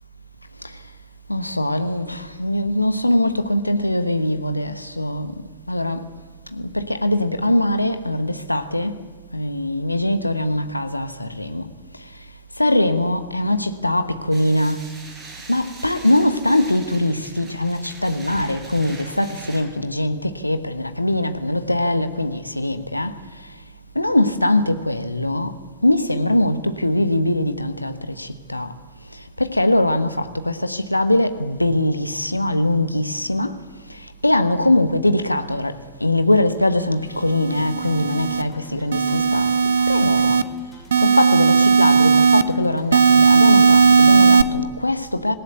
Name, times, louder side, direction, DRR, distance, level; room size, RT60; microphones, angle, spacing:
voice 1, 1.3-5.3 5.7-6.1 6.5-9.0 9.3-11.7 12.6-14.8 15.5-23.2 23.9-25.5 25.8-28.7 29.4-33.6 34.2-35.7 36.0-39.5 39.9-40.4 41.0-45.4, left 1 dB, 85° left, 1.2 m, -21 dB
sound 1, 14.3-19.6, right 3 dB, 20° right, 7.9 m, -42 dB
sound 2, 37.3-38.4 38.9-40.4 40.9-42.4 42.9-44.4, right 5 dB, 70° right, 0.8 m, -15 dB
sound 3, 37.5-44.2, left 2 dB, 15° left, 7.1 m, -43 dB
26.5 x 17.0 x 8.1 m
figure-of-eight pair, 90°, 0 cm